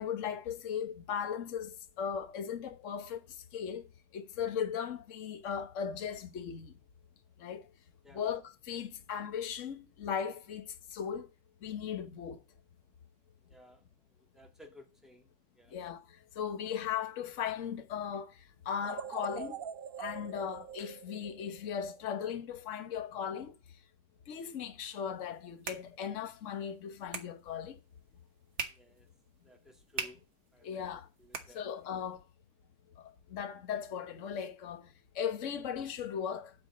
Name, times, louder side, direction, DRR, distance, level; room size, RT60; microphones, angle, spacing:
voice 1, 0.0-3.2 3.5-3.8 4.1-6.7 7.4-7.7 8.1-11.3 11.6-12.4 15.7-19.6 20.0-23.5 24.3-27.8 30.6-31.1 31.5-32.2 33.0-36.5, left 8 dB, 50° left, 1.3 m, -37 dB
voice 2, 13.5-13.8 14.3-15.3 15.6-15.8 28.7-29.1 29.4-30.2 30.5-30.9 31.2-31.6, left 1 dB, ahead, 2.1 m, -56 dB
sound 1, 18.8-22.0, right 7 dB, 90° right, 0.4 m, -43 dB
sound 2, 25.1-32.1, right 5 dB, 45° right, 1.5 m, -45 dB
9.2 x 4.7 x 7.6 m
omnidirectional pair, 1.9 m